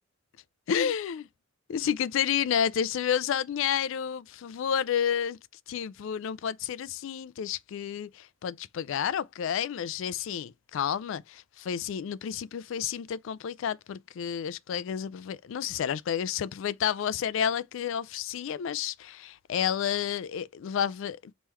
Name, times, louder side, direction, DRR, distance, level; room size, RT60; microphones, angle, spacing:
voice 1, 0.7-1.3 1.7-5.4 5.7-21.3, left 8 dB, 65° left, 0.3 m, -30 dB
3.6 x 3.1 x 4.3 m
head